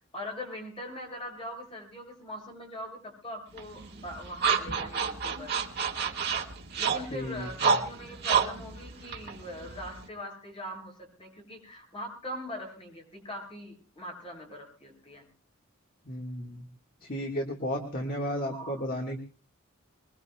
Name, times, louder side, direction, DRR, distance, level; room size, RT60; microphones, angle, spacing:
voice 1, 0.1-5.6 6.8-15.2 18.2-18.7, left 1 dB, 25° left, 1 dB, 7.5 m, -41 dB
sound 1, 3.6-10.1, right 6 dB, 50° right, 1.7 m, -30 dB
voice 2, 7.1-7.5 16.1-16.6 17.0-19.2, equal, 45° left, 1 dB, 1.7 m, -33 dB
24.5 x 22.0 x 2.3 m, 0.36 s
head